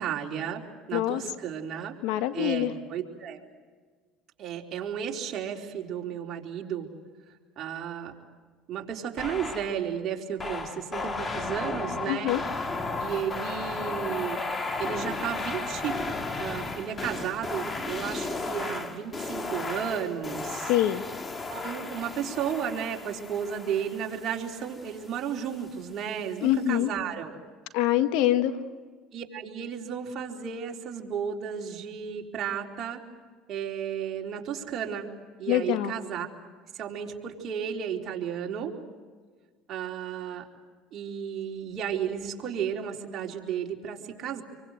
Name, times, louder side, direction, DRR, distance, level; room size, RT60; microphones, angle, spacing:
voice 1, 0.0-1.9 2.3-3.4 4.4-6.9 7.6-8.1 8.7-12.4 13.0-14.4 14.8-16.0 16.3-20.7 21.5-27.4 29.1-33.0 33.5-35.1 35.4-36.5 36.7-38.7 39.7-40.5 40.9-44.4, right 8 dB, 50° right, 1 dB, 4.1 m, -33 dB
voice 2, 0.9-1.2 2.0-2.7 12.1-12.4 20.7-21.0 26.4-26.9 27.7-28.5 35.5-35.9, left 13 dB, 80° left, 10 dB, 1.6 m, -24 dB
sound 1, 9.2-9.8 10.4-25.1, left 3 dB, 25° left, 2.4 m, -34 dB
27.5 x 24.0 x 8.1 m, 1.5 s
supercardioid pair, 95°, 0 cm